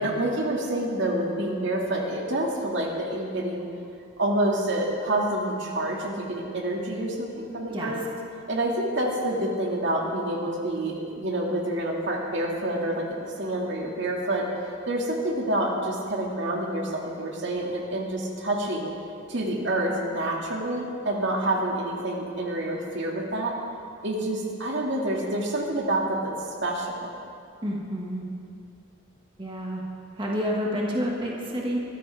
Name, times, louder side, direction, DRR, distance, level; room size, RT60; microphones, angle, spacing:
voice 1, 0.0-3.7 4.2-8.0 8.5-18.9 19.3-23.5 24.0-27.1, right 1 dB, 65° right, -1 dB, 2.2 m, -28 dB
voice 2, 27.6-28.2 29.4-29.8 30.1-31.8, equal, 25° right, -3 dB, 1.8 m, -29 dB
23.5 x 14.0 x 3.5 m, 2.4 s
head